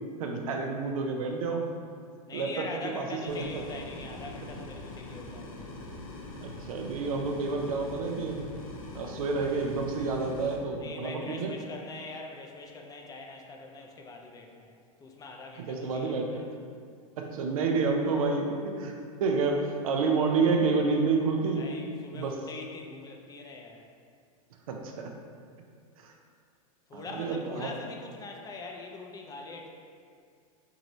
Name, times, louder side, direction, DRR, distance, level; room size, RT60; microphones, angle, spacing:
voice 1, 0.2-1.7 2.3-2.7 2.9-3.4 6.4-8.5 8.9-11.5 15.7-16.4 17.2-18.9 19.2-21.6 22.1-22.4 24.7-25.1 26.0-26.1 26.9-27.7, right 4 dB, 70° right, 2 dB, 0.5 m, -29 dB
voice 2, 2.3-5.7 10.8-16.5 21.5-23.9 26.9-29.7, left 3 dB, 20° left, 1 dB, 0.4 m, -43 dB
sound 1, 3.3-10.6, left 2 dB, 70° left, 0.7 m, -43 dB
4.7 x 2.9 x 2.6 m, 2.2 s
hypercardioid pair, 100°, 19 cm